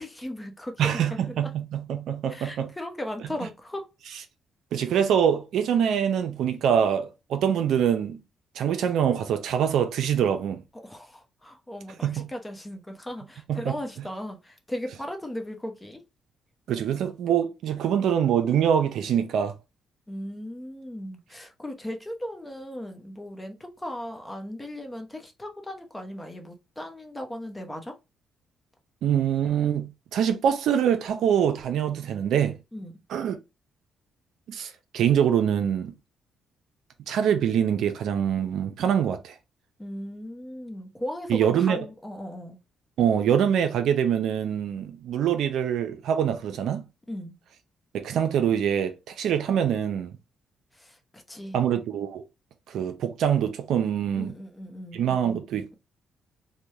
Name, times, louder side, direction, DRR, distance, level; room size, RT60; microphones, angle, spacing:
voice 1, 0.0-1.2 2.3-3.9 10.8-16.0 20.1-27.9 32.7-32.9 39.8-42.6 47.1-47.4 50.7-51.6 54.2-55.1, left 1 dB, 15° left, 0.8 m, -37 dB
voice 2, 0.8-2.7 4.7-8.2 8.6-10.6 12.0-12.3 13.5-13.8 16.7-19.6 29.0-32.6 33.1-33.4 34.5-35.9 37.1-39.3 41.3-41.8 43.0-46.9 47.9-50.2 51.5-52.2 52.7-54.3 54.9-55.7, right 8 dB, 75° right, 0.5 m, -24 dB
3.2 x 2.2 x 2.7 m
cardioid pair, 90°, 0 cm